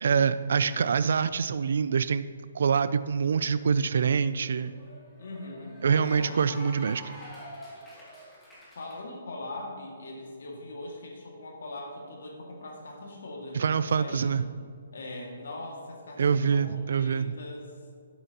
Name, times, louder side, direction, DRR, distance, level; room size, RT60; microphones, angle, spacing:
voice 1, 0.0-2.2 2.5-4.7 5.8-7.2 13.5-14.5 16.2-17.4, right 6 dB, 65° right, 14 dB, 0.3 m, -25 dB
Cheering / Applause, 3.7-9.0, left 1 dB, 5° left, 1.7 m, -47 dB
voice 2, 5.2-6.4 8.8-14.3 14.9-16.2 16.5-17.7, left 2 dB, 75° left, 0 dB, 2.0 m, -41 dB
11.0 x 8.0 x 2.9 m, 2.2 s
hypercardioid pair, 165°, 0 cm